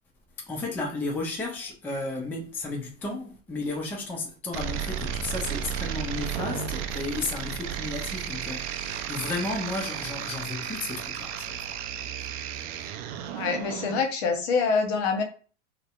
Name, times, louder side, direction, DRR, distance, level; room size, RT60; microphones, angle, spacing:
voice 1, 0.5-11.6, left 2 dB, 5° left, 0.4 m, -33 dB
sound 1, 4.5-14.0, right 8 dB, 60° right, 0.5 m, -33 dB
voice 2, 13.3-15.2, left 5 dB, 55° left, 0.9 m, -25 dB
2.6 x 2.1 x 2.4 m
hypercardioid pair, 110°, 38 cm